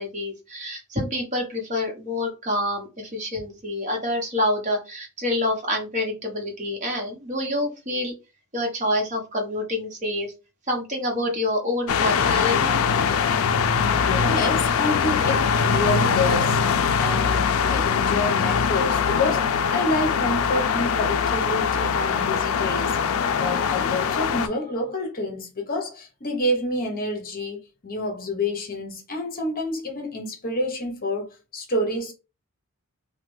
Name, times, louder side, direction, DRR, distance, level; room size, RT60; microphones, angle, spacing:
voice 1, 0.0-8.1 8.5-10.3 10.7-12.7, left 1 dB, 35° right, 1.0 m, -27 dB
sound 1, 11.9-24.5, left 6 dB, 70° left, 0.3 m, -22 dB
voice 2, 14.0-16.6 17.0-22.9 23.4-32.1, left 1 dB, 40° left, 0.8 m, -28 dB
sound 2, 19.3-25.0, left 4 dB, 10° left, 1.6 m, -42 dB
3.1 x 2.2 x 3.1 m
head